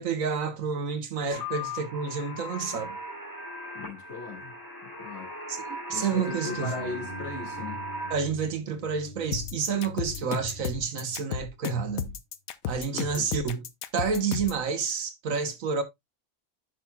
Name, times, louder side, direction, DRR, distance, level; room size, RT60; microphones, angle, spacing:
voice 1, 0.0-3.0 5.5-6.7 8.1-12.1 12.7-13.6 13.9-15.8, right 6 dB, 75° right, 1.5 m, -29 dB
sound 1, 1.3-8.1, left 1 dB, 15° left, 2.7 m, -38 dB
voice 2, 3.7-4.5 4.8-5.3 5.9-7.8 12.9-13.3, left 3 dB, 55° left, 2.3 m, -38 dB
sound 2, 6.1-12.1, left 4 dB, 50° right, 2.9 m, -43 dB
sound 3, 9.3-14.6, left 9 dB, 85° left, 1.1 m, -34 dB
11.0 x 5.9 x 2.2 m
omnidirectional pair, 1.4 m